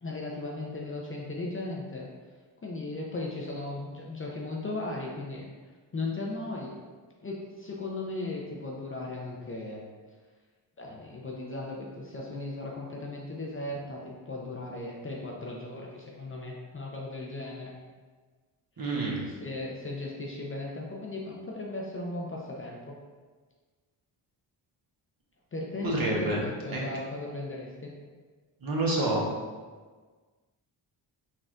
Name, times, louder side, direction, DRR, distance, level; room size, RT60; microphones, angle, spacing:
voice 1, 0.0-2.1 2.6-5.5 5.9-6.7 7.2-9.8 10.8-17.7 18.8-18.9 19.3-23.0 25.5-27.9, left 2 dB, 25° left, -2 dB, 0.6 m, -37 dB
voice 2, 18.8-19.2 25.8-26.4 26.7-26.8 28.6-29.2, right 2 dB, 45° right, -4 dB, 1.1 m, -28 dB
4.1 x 2.4 x 2.4 m, 1.4 s
supercardioid pair, 50°, 48 cm